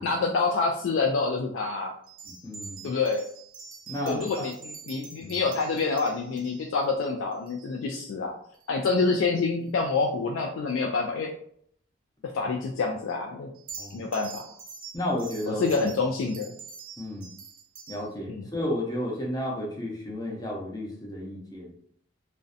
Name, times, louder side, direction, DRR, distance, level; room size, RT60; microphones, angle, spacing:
voice 1, 0.0-1.9 2.8-3.2 4.1-8.3 8.7-11.3 12.3-13.5 13.9-14.5 15.5-16.6 18.3-18.4, left 4 dB, 80° left, 2 dB, 0.3 m, -27 dB
sound 1, 2.0-8.0 8.5-8.7 9.0-9.1 13.5-18.1, right 5 dB, 45° right, 0.5 m, -45 dB
voice 2, 2.4-2.9 3.9-4.3 5.2-5.4 13.8-14.0 14.9-15.7 17.0-17.3 17.9-21.7, left 1 dB, 20° left, -2 dB, 0.6 m, -32 dB
2.5 x 2.1 x 2.5 m, 0.64 s
head